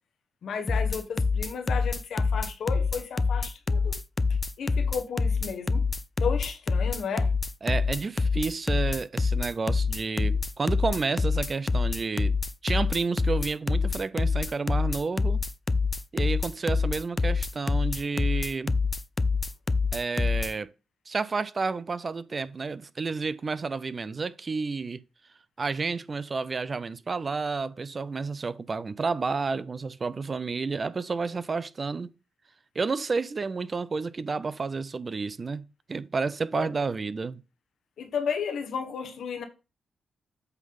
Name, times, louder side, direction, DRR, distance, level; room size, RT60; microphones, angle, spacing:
voice 1, 0.4-4.0 4.6-5.8 6.2-7.3 36.5-36.7 38.0-39.4, left 6 dB, 75° left, 1.2 m, -33 dB
sound 1, 0.7-20.5, left 4 dB, 30° left, 0.5 m, -26 dB
voice 2, 7.6-12.3 12.6-15.4 16.1-18.8 19.9-20.7 21.1-25.0 25.6-32.1 32.7-35.6 35.9-37.4, right 4 dB, 45° right, 0.6 m, -30 dB
8.1 x 3.6 x 5.4 m
supercardioid pair, 45°, 0 cm